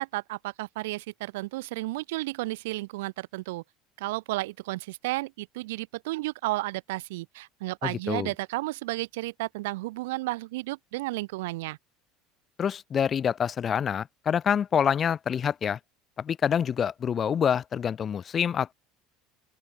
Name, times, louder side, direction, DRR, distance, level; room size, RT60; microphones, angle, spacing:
voice 1, 0.0-3.6 4.0-11.8, right 20 dB, 85° right, 7.3 m, -33 dB
voice 2, 7.8-8.3 12.6-15.8 16.2-18.7, left 8 dB, 35° left, 1.4 m, -26 dB
open air
supercardioid pair, 95°, 0 cm